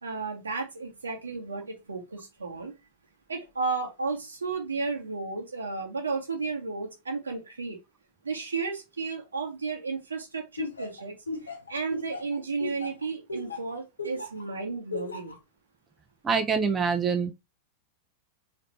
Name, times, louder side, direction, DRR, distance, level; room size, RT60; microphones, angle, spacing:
voice 1, 0.0-2.7 3.3-7.8 8.2-11.1 11.4-15.4, right 4 dB, 75° right, 1.3 m, -33 dB
Laughter, 10.6-14.4 14.9-15.4, left 3 dB, 75° left, 0.8 m, -36 dB
voice 2, 16.2-17.3, right 5 dB, 20° right, 0.6 m, -25 dB
3.9 x 3.2 x 3.2 m
figure-of-eight pair, 90°, 0 cm